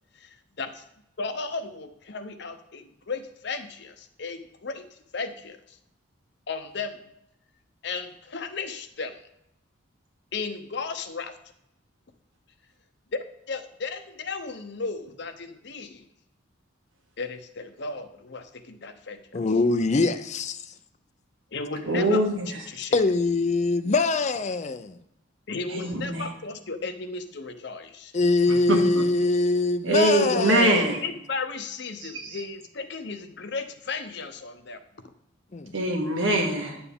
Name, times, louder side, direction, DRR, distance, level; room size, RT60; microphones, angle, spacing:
voice 1, 0.2-0.8 1.2-5.8 6.5-7.1 7.8-9.2 10.3-11.4 13.1-16.0 17.2-19.4 21.5-23.0 25.5-28.1 30.3-34.8, left 4 dB, 60° left, 0.8 m, -35 dB
voice 2, 19.3-20.6 22.9-25.0 28.1-31.0 35.5-35.7, left 3 dB, 35° left, 0.5 m, -23 dB
voice 3, 21.8-22.6 25.7-26.2 28.7-29.0 29.8-31.0 32.0-32.4 35.7-36.8, right 1 dB, 85° right, 1.7 m, -24 dB
9.6 x 6.9 x 3.5 m
head